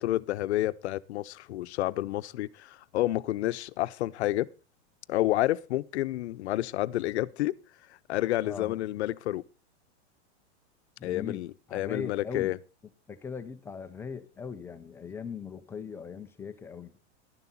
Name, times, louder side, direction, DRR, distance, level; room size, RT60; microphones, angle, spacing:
voice 1, 0.0-4.5 5.1-7.6 8.1-9.4 11.0-12.6, left 15 dB, 65° left, 0.8 m, -29 dB
voice 2, 8.4-8.8 11.0-11.4 11.7-12.5 13.1-16.9, left 6 dB, 5° left, 0.5 m, -39 dB
12.0 x 11.0 x 4.1 m
supercardioid pair, 165°, 35 cm